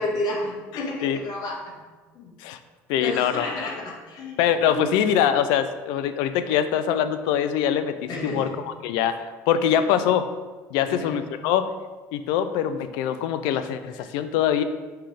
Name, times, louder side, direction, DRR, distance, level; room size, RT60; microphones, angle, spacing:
voice 1, 0.0-1.7 2.1-2.3 3.0-4.8 8.1-8.5 9.7-9.8 10.8-11.2, left 1 dB, 60° left, -2 dB, 1.8 m, -31 dB
voice 2, 0.7-1.2 2.4-2.6 2.9-3.5 4.4-10.3 10.7-11.7 12.1-14.6, left 9 dB, 80° left, 11 dB, 0.4 m, -23 dB
5.7 x 3.4 x 5.0 m, 1.3 s
supercardioid pair, 80°, 8 cm